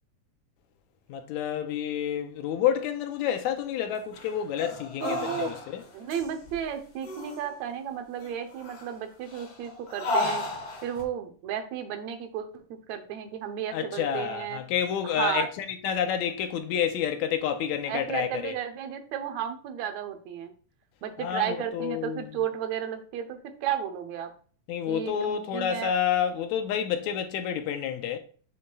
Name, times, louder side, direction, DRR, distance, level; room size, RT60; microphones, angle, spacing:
voice 1, 1.1-5.8 13.7-18.5 21.2-22.4 24.7-28.2, left 9 dB, 80° left, 2.0 m, -29 dB
sound 1, 4.1-5.8 6.1-6.6 7.0-7.6 8.2-8.9 9.3-11.0, left 2 dB, 55° left, 2.0 m, -33 dB
voice 2, 5.0-5.5 5.9-10.4 10.8-14.6 15.0-15.5 17.9-20.5 21.0-24.3 24.9-25.9, right 9 dB, 75° right, 2.1 m, -33 dB
6.9 x 6.6 x 2.3 m
omnidirectional pair, 3.4 m